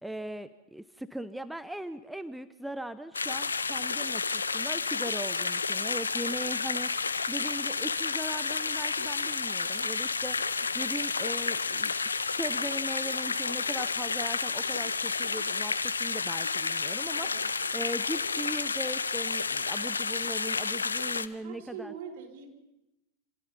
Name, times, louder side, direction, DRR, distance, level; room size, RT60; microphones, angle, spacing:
voice 1, 0.0-11.9 12.4-17.3 17.7-21.9, right 1 dB, 5° right, 12 dB, 0.9 m, -39 dB
sound 1, 3.1-21.3, left 4 dB, 75° left, 1.1 m, -31 dB
voice 2, 21.4-22.5, right 7 dB, 50° right, 3 dB, 6.1 m, -42 dB
28.5 x 28.5 x 5.5 m, 0.92 s
figure-of-eight pair, 90°, 0 cm